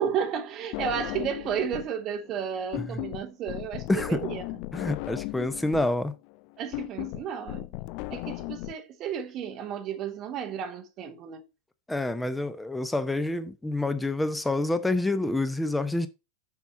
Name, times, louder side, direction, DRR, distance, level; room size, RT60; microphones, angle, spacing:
voice 1, 0.0-4.4 6.6-7.7 8.1-11.4, right 8 dB, 35° right, 0.9 m, -32 dB
sound 1, 0.7-2.0 2.3-8.7, left 21 dB, 45° left, 0.3 m, -36 dB
voice 2, 4.7-6.1 11.9-16.1, left 2 dB, 5° left, 0.9 m, -27 dB
7.0 x 5.7 x 5.5 m
figure-of-eight pair, 90°, 0 cm